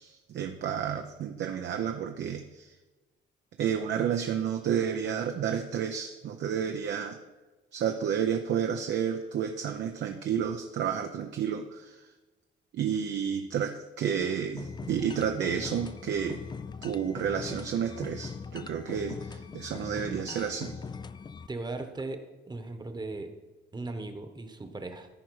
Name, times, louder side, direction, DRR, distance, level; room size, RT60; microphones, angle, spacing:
voice 1, 0.0-2.7 3.6-7.2 7.7-12.0 12.7-16.4 16.8-20.8, right 8 dB, 65° right, 5 dB, 0.7 m, -31 dB
sound 1, 14.6-21.5, left 5 dB, 20° left, 0.4 m, -41 dB
voice 2, 21.5-23.3 23.7-25.1, right 2 dB, 20° right, 7 dB, 1.1 m, -38 dB
14.0 x 4.8 x 4.7 m, 1.2 s
cardioid pair, 90°, 20 cm